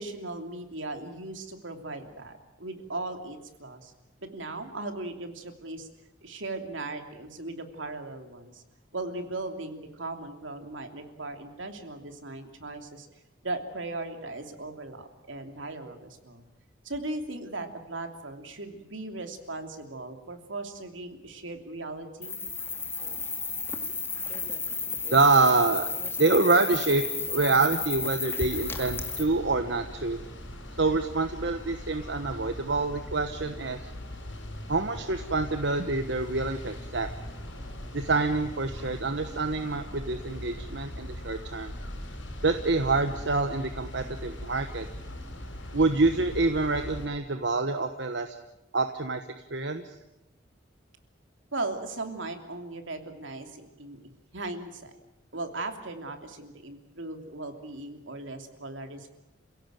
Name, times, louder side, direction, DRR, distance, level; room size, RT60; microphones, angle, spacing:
voice 1, 0.0-3.9 4.2-5.9 6.2-8.6 8.9-13.1 13.4-16.4 16.8-22.4 51.5-54.0 54.3-54.9 55.3-59.1, right 2 dB, 80° right, 6 dB, 3.0 m, -38 dB
sound 1, 22.2-29.2, left 4 dB, 10° left, 2.0 m, -33 dB
voice 2, 25.1-25.8 26.2-27.0 27.3-30.2 30.8-33.9 34.7-37.1 37.9-41.7 42.4-44.9 45.7-48.3 48.7-49.2 49.5-49.8, right 3 dB, 65° right, 7 dB, 1.3 m, -26 dB
sound 2, 28.4-47.1, left 1 dB, 75° left, 6.3 m, -40 dB
28.5 x 17.0 x 9.1 m, 0.92 s
head